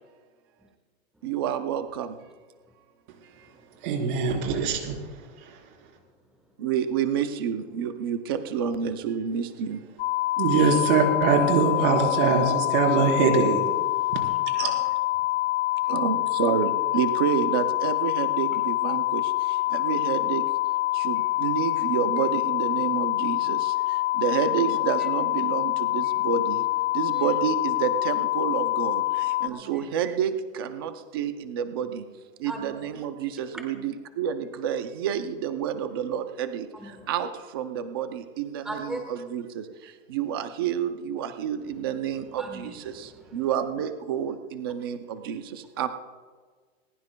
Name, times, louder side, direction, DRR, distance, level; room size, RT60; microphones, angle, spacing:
voice 1, 1.2-2.2 3.4-3.5 6.6-9.8 15.9-20.5 20.9-26.6 26.9-32.1 32.4-45.9, right 8 dB, 20° right, 9 dB, 0.4 m, -29 dB
voice 2, 3.8-5.0 10.4-13.6 14.6-14.8, right 5 dB, 40° right, 1 dB, 3.9 m, -22 dB
sound 1, 10.0-29.5, left 18 dB, 45° left, 0.5 m, -26 dB
voice 3, 14.1-14.6 25.0-25.1 27.1-27.3 29.5-29.9 32.4-32.8 36.7-37.1 38.6-39.0 42.4-43.5, right 1 dB, ahead, 2 dB, 1.2 m, -40 dB
20.5 x 20.0 x 2.2 m, 1.5 s
supercardioid pair, 165°, 39 cm